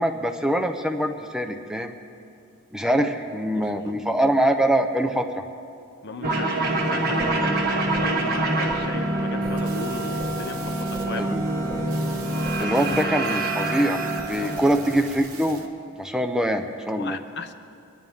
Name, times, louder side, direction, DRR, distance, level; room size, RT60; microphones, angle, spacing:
voice 1, 0.0-1.9 2.7-5.3 11.2-11.4 12.6-14.0 14.3-15.7 16.0-17.2, right 1 dB, 5° right, 5 dB, 0.5 m, -23 dB
voice 2, 3.5-3.9 6.0-11.4 12.6-12.8 14.3-14.8 16.9-17.5, left 4 dB, 55° left, 8 dB, 0.7 m, -36 dB
sound 1, 6.2-15.2, right 2 dB, 45° right, 1.5 m, -26 dB
sound 2, 7.2-13.2, equal, 20° right, 1.6 m, -41 dB
sound 3, 9.4-15.6, right 5 dB, 85° right, 1.2 m, -43 dB
23.0 x 11.0 x 3.6 m, 2.4 s
head